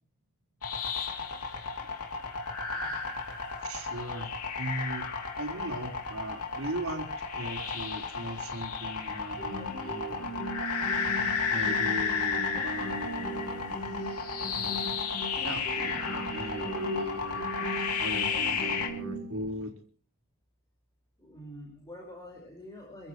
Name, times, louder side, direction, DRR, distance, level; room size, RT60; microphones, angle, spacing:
sound 1, 0.6-18.9, left 5 dB, 85° left, 3.0 m, -33 dB
voice 1, 3.6-4.3 4.6-5.0 5.4-10.4 11.5-13.8 14.6-14.8 15.4-17.4 18.0-19.7, right 1 dB, 70° right, 1 dB, 4.5 m, -38 dB
sound 2, 9.4-19.4, right 1 dB, 50° left, 6.1 m, -39 dB
voice 2, 21.2-23.1, equal, 15° left, -1 dB, 5.0 m, -47 dB
26.0 x 15.0 x 3.1 m, 0.42 s
head